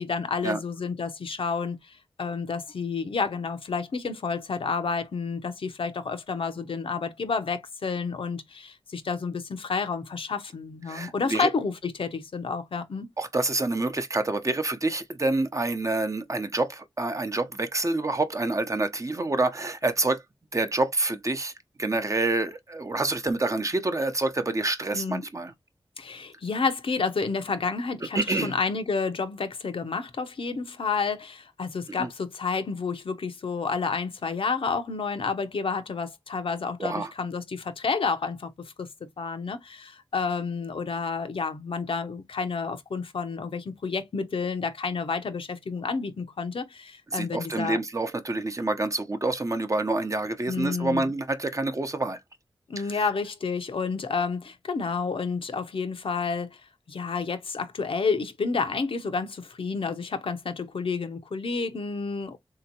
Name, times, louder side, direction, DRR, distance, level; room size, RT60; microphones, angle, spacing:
voice 1, 0.0-13.1 24.9-25.2 26.0-38.9 39.2-47.8 50.5-51.1 52.7-56.6 56.9-62.4, left 4 dB, 70° left, 0.7 m, -30 dB
voice 2, 10.9-11.5 13.2-20.2 20.5-21.5 21.8-25.5 28.1-28.5 32.0-32.1 36.8-37.1 47.1-52.2 52.9-53.0, right 2 dB, 35° right, 0.7 m, -27 dB
3.4 x 2.8 x 2.7 m
cardioid pair, 50°, 9 cm